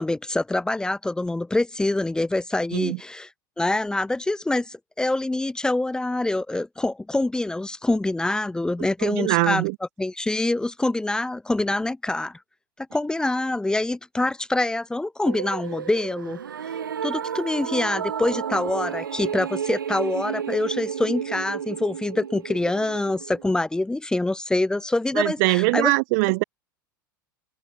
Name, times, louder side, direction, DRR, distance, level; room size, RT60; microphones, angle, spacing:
voice 1, 0.0-3.3 3.6-9.6 10.0-12.4 12.8-16.4 17.0-25.9, left 2 dB, 5° left, 1.1 m, -25 dB
voice 2, 9.0-9.8 25.1-26.4, right 30 dB, 50° right, 0.6 m, -22 dB
sound 1, 15.3-23.5, right 8 dB, 70° right, 2.1 m, -32 dB
figure-of-eight pair, 80°, 11 cm